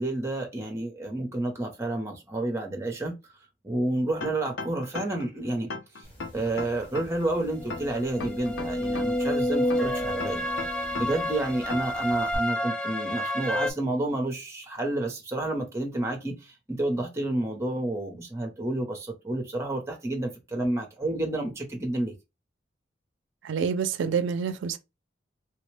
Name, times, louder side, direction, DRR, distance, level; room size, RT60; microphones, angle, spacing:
voice 1, 0.0-3.1 3.6-5.7 6.0-6.1 6.3-10.5 10.9-22.1, right 2 dB, 15° right, 0.7 m, -30 dB
sound 1, 4.2-5.3 5.7-7.3 7.7-9.3 9.7-11.3 11.7-12.0, left 3 dB, 85° left, 0.5 m, -37 dB
sound 2, 6.3-6.4 6.8-6.9 7.4-11.7 12.3-12.4, left 1 dB, 30° left, 1.0 m, -30 dB
sound 3, 8.0-13.7, equal, 5° left, 0.3 m, -31 dB
voice 2, 23.4-24.8, right 6 dB, 85° right, 0.4 m, -27 dB
3.2 x 2.1 x 3.1 m
head